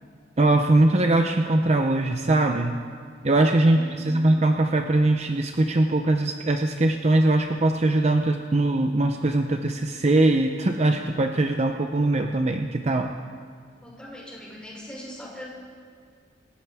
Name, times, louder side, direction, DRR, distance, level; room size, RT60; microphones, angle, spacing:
voice 1, 0.4-2.8 3.2-3.8 4.0-13.1, right 2 dB, 35° right, 5 dB, 0.7 m, -21 dB
voice 2, 3.7-4.3 13.8-15.5, equal, 5° left, -6 dB, 5.3 m, -40 dB
27.0 x 14.5 x 3.6 m, 2.1 s
head